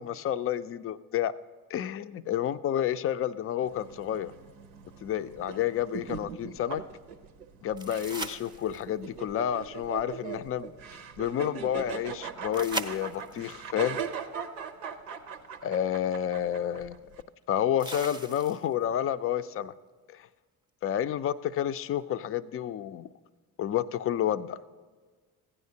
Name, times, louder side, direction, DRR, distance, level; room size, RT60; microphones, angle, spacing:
voice 1, 0.0-1.3 1.7-4.3 5.0-6.8 7.6-10.7 11.2-14.0 15.6-17.0 17.5-19.7 20.1-20.3 20.8-23.1 23.6-24.6, left 10 dB, 30° left, 15 dB, 0.4 m, -30 dB
sound 1, 3.6-17.2, right 7 dB, 85° right, 0.7 m, -40 dB
sound 2, 7.8-9.0 12.5-13.5 15.4-15.5 17.8-18.8 21.8-21.9, right 2 dB, 10° right, 0.6 m, -38 dB
15.5 x 9.7 x 2.8 m, 1.5 s
hypercardioid pair, 50°, 46 cm